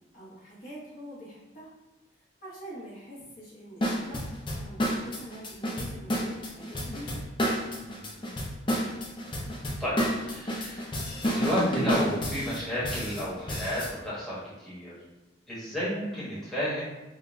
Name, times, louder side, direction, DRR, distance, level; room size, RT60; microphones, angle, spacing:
voice 1, 0.1-1.7 2.4-4.3 4.5-7.2, equal, 40° left, -7 dB, 1.0 m, -44 dB
sound 1, 3.8-13.9, equal, 25° left, 0.5 m, -30 dB
voice 2, 7.8-8.3 9.8-10.8 11.3-14.9 15.5-16.8, equal, ahead, -10 dB, 1.1 m, -32 dB
5.0 x 2.1 x 2.6 m, 1.1 s
head